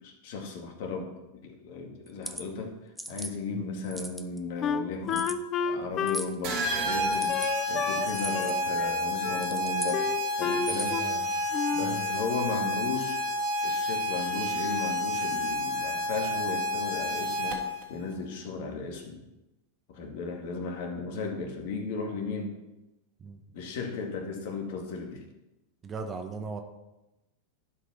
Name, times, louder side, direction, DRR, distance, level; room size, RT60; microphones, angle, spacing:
voice 1, 0.0-7.4 7.7-10.1 10.3-11.0 11.7-13.2 13.6-17.6 17.9-19.2 19.9-22.6 23.5-25.2, left 4 dB, 60° left, 2 dB, 2.2 m, -35 dB
sound 1, 2.1-2.4 3.0-3.3 3.8-4.4 5.1-5.4 6.1-6.4 7.1-7.5 8.1-8.5 9.3-10.0 10.6-11.0, equal, ahead, 0.8 m, -38 dB
Wind instrument woodwind instrument, 4.6-8.1 8.3-9.5 9.9-11.2 11.5-12.0, left 7 dB, 35° left, 0.6 m, -31 dB
sound 2, 6.4-17.8, left 1 dB, 50° right, 2.2 m, -30 dB
voice 2, 25.8-26.6, right 4 dB, 25° right, 5 dB, 1.3 m, -38 dB
11.5 x 4.9 x 5.9 m, 0.96 s
hypercardioid pair, 100°, 0 cm